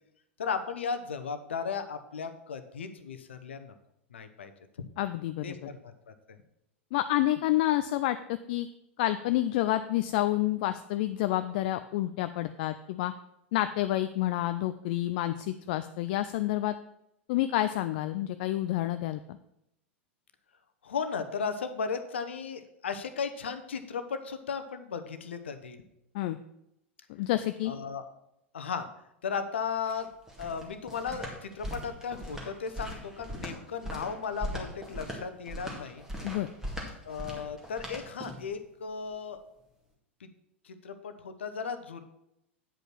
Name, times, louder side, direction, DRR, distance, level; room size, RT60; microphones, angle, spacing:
voice 1, 0.4-3.7 4.1-4.5 5.4-6.4 20.8-25.8 27.6-28.0 28.5-28.9 29.2-30.1 30.4-36.0 37.0-39.4 40.2-40.3 40.6-42.0, left 6 dB, 65° left, 9 dB, 0.9 m, -36 dB
voice 2, 5.0-5.6 6.9-8.7 9.0-13.1 13.5-16.7 17.3-19.2 26.1-26.4 27.1-27.7 36.2-36.5, left 14 dB, 45° left, 11 dB, 0.4 m, -29 dB
sound 1, 29.6-38.5, equal, 5° right, 2.1 m, -40 dB
9.0 x 5.3 x 6.0 m, 0.82 s
figure-of-eight pair, 90°, 7 cm